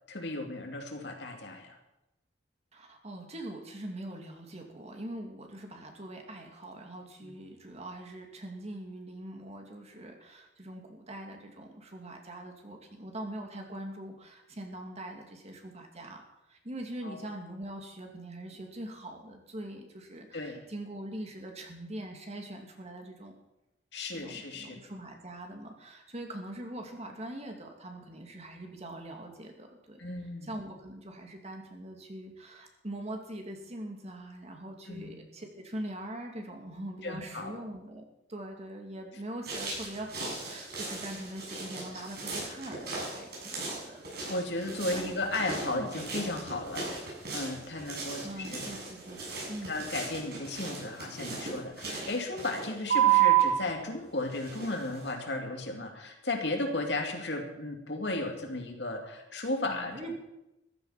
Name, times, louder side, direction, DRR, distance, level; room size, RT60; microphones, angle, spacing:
voice 1, 0.1-1.8 7.2-7.3 17.0-17.2 20.3-20.6 23.9-24.8 30.0-30.5 34.9-35.1 37.0-37.6 44.3-48.7 49.7-60.0, left 2 dB, 70° left, 3 dB, 2.6 m, -35 dB
voice 2, 2.7-16.2 16.5-23.4 24.1-30.0 30.4-44.0 44.9-45.3 45.7-45.9 48.2-49.2 49.5-49.8 59.6-60.2, right 1 dB, 40° right, 3 dB, 2.5 m, -42 dB
sound 1, 39.4-53.7 54.3-55.1, right 10 dB, 60° right, 7.5 m, -33 dB
15.0 x 12.5 x 5.9 m, 0.92 s
head